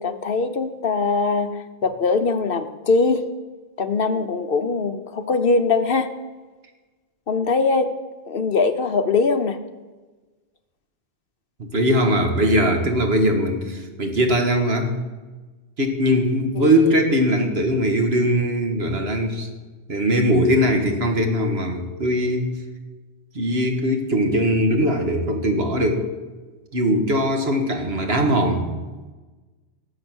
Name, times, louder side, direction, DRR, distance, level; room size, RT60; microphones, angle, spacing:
voice 1, 0.0-1.5 1.8-3.2 3.8-6.1 7.3-7.9 8.3-9.6 16.6-17.0, left 4 dB, 55° left, 9 dB, 1.0 m, -21 dB
voice 2, 11.6-15.0 15.8-19.5 19.9-22.6 23.3-26.1 26.7-28.7, equal, 60° right, 4 dB, 2.0 m, -20 dB
18.5 x 7.8 x 6.2 m, 1.3 s
omnidirectional pair, 1.2 m